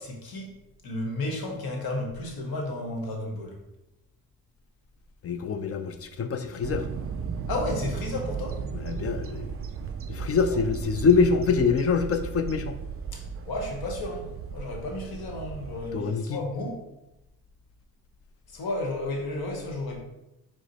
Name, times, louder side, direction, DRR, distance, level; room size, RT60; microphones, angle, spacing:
voice 1, 0.0-3.6 7.5-8.6 10.4-10.6 13.1-16.8 18.5-20.0, left 2 dB, 70° left, 2 dB, 1.0 m, -33 dB
voice 2, 5.2-6.8 8.7-9.5 10.1-12.8 15.9-16.4, left 5 dB, 40° left, 8 dB, 0.4 m, -25 dB
sound 1, 6.6-15.9, right 6 dB, 40° right, 0.4 m, -35 dB
4.8 x 2.0 x 4.1 m, 0.94 s
supercardioid pair, 60°, 38 cm